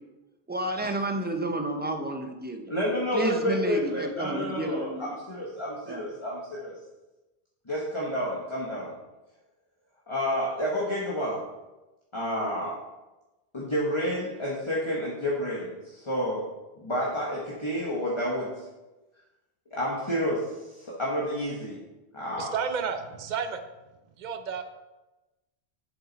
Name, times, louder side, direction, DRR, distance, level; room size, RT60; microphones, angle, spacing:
voice 1, 0.5-2.7 3.1-5.1 5.9-6.0, right 1 dB, 10° right, 4 dB, 0.7 m, -31 dB
voice 2, 2.7-6.7 7.7-8.9 10.1-11.4 12.1-12.8 13.5-16.4 16.8-18.6 19.7-21.8 22.1-22.5, equal, 30° left, -5 dB, 1.4 m, -30 dB
voice 3, 22.4-23.6 24.2-24.6, right 6 dB, 50° right, 8 dB, 0.8 m, -31 dB
7.8 x 7.1 x 4.2 m, 1.1 s
omnidirectional pair, 1.0 m